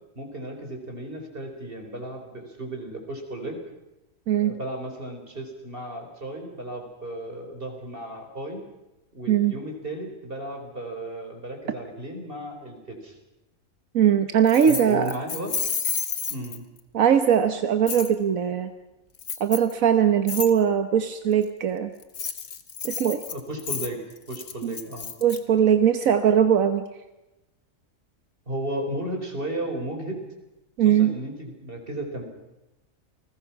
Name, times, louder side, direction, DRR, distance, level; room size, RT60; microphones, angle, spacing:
voice 1, 0.1-3.6 4.4-8.6 9.1-13.2 14.6-15.5 16.3-16.6 23.3-24.0 24.3-25.1 28.5-30.2 30.8-32.2, right 1 dB, 40° right, 4 dB, 4.7 m, -34 dB
voice 2, 13.9-15.1 16.9-18.7 19.4-21.9 22.8-23.2 24.6-24.7 25.2-26.8 30.8-31.1, right 8 dB, 85° right, 8 dB, 1.5 m, -20 dB
Keys jangling, 14.5-16.8 17.9-18.1 19.2-19.7 20.3-20.5 22.0-25.4, left 6 dB, 75° left, 1.9 m, -31 dB
29.5 x 20.0 x 5.9 m, 0.97 s
omnidirectional pair, 1.4 m